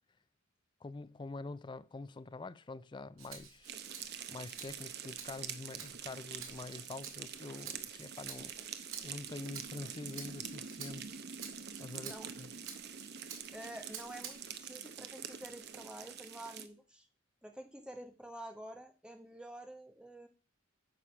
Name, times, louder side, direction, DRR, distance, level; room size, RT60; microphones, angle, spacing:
voice 1, 0.8-8.6 9.0-11.1 11.8-12.5, left 3 dB, 25° left, 0.4 m, -46 dB
Rattle (instrument), 3.2-14.6 15.1-16.3, right 7 dB, 75° right, 2.0 m, -51 dB
sound 1, 3.6-16.7, right 7 dB, 55° right, 0.8 m, -46 dB
voice 2, 13.5-17.1 17.4-20.3, right 1 dB, 5° right, 1.2 m, -49 dB
9.0 x 5.1 x 6.1 m
head